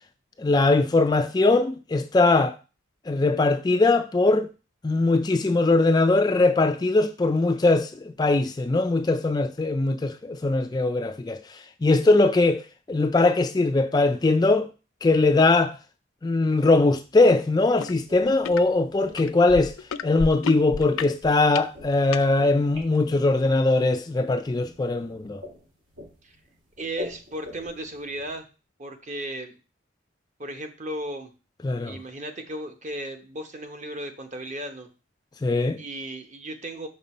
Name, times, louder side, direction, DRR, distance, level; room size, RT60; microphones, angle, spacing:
voice 1, 0.4-2.6 3.1-4.5 4.8-12.6 12.9-14.7 15.0-15.7 16.2-19.7 20.0-25.4 31.6-32.0 35.4-35.8, left 2 dB, 20° left, 0.3 m, -21 dB
sound 1, 17.8-17.9 18.3-18.6 19.2-22.3 23.0-23.1, left 6 dB, 90° left, 0.4 m, -32 dB
sound 2, 17.9-28.4, left 2 dB, 75° right, 2.1 m, -45 dB
voice 2, 26.8-28.5 28.8-29.5 30.4-31.3 31.8-34.9 35.8-36.9, right 1 dB, 35° right, 0.9 m, -35 dB
5.9 x 5.3 x 4.2 m
head